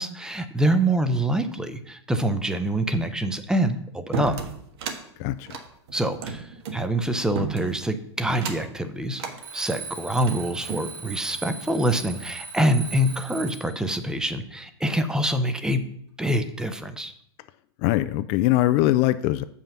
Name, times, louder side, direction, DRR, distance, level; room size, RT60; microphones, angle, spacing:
voice 1, 0.0-4.4 5.9-9.2 9.5-15.8 16.2-17.1, right 1 dB, 5° right, 9 dB, 0.6 m, -25 dB
sound 1, 4.1-5.0 5.4-6.8 7.3-7.9 8.3-8.7 9.2-9.4 10.0-10.9, right 5 dB, 65° right, 1.5 m, -33 dB
Alarm, 9.4-13.8, right 5 dB, 80° right, 2.6 m, -39 dB
voice 2, 17.8-19.4, left 16 dB, 40° left, 12 dB, 0.3 m, -21 dB
7.4 x 5.6 x 5.9 m, 0.70 s
hypercardioid pair, 135°, 15 cm